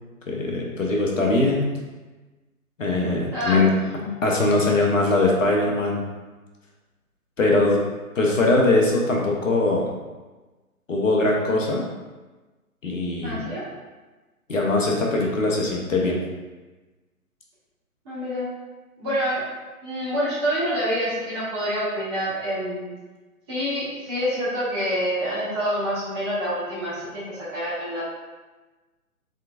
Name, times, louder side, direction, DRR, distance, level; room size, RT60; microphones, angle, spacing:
voice 1, 0.3-1.6 2.8-3.7 4.2-6.0 7.4-7.8 8.1-9.9 10.9-11.8 12.8-13.4 14.5-16.2, left 2 dB, 60° left, -1 dB, 0.9 m, -21 dB
voice 2, 3.3-4.1 13.2-13.6 18.0-18.5 19.0-19.4 19.8-22.9 23.5-28.0, equal, 20° right, -11 dB, 1.1 m, -27 dB
4.3 x 3.7 x 2.4 m, 1.2 s
figure-of-eight pair, 135°, 44 cm